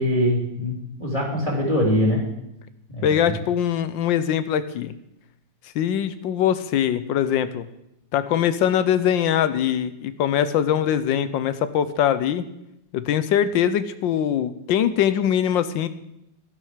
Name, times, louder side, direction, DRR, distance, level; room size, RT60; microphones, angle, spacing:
voice 1, 0.0-2.2 2.9-3.3, equal, 15° left, -2 dB, 3.0 m, -23 dB
voice 2, 3.0-4.9 5.7-7.7 8.1-12.5 12.9-15.9, left 9 dB, 80° left, 13 dB, 1.4 m, -22 dB
12.0 x 11.0 x 5.0 m, 0.84 s
omnidirectional pair, 2.1 m